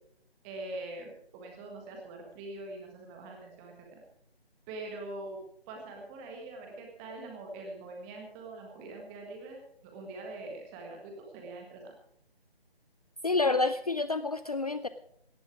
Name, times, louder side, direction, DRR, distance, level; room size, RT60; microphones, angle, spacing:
voice 1, 0.4-4.0 4.7-5.4 5.7-11.9, right 2 dB, 10° right, 1 dB, 1.6 m, -43 dB
voice 2, 13.2-14.9, left 3 dB, 40° left, 12 dB, 0.5 m, -28 dB
18.0 x 12.0 x 4.8 m, 0.70 s
figure-of-eight pair, 155°, 31 cm